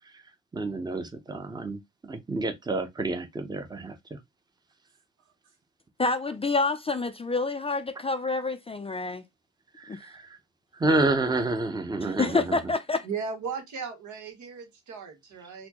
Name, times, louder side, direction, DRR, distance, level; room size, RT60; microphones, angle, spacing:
voice 1, 0.5-4.2 9.8-10.3 10.8-12.6, right 2 dB, 15° right, 0.7 m, -29 dB
voice 2, 6.0-9.2 9.9-10.0 12.0-13.1, left 3 dB, 20° left, 0.4 m, -28 dB
voice 3, 13.0-15.7, right 5 dB, 75° right, 1.2 m, -36 dB
4.2 x 2.1 x 2.9 m
cardioid pair, 90°, 30 cm